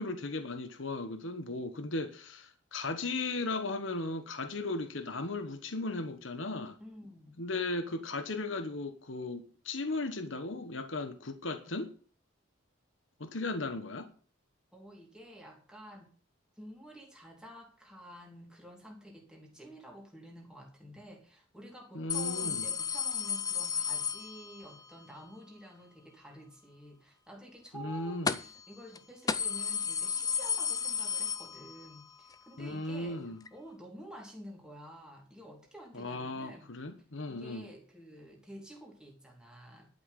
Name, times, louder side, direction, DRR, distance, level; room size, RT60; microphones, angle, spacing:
voice 1, 0.0-6.8 7.4-11.9 13.2-14.1 21.9-22.7 27.7-28.4 32.6-33.4 35.9-37.7, left 2 dB, 70° left, 1.2 m, -36 dB
voice 2, 6.8-7.4 14.7-16.1 16.6-36.7 37.3-39.9, equal, 5° right, 2.8 m, -50 dB
sound 1, 22.1-24.8 28.3-28.7 28.9-29.0 29.3-32.0 32.3-32.4 33.5-33.6, left 6 dB, 20° left, 0.5 m, -33 dB
11.0 x 6.0 x 8.3 m
head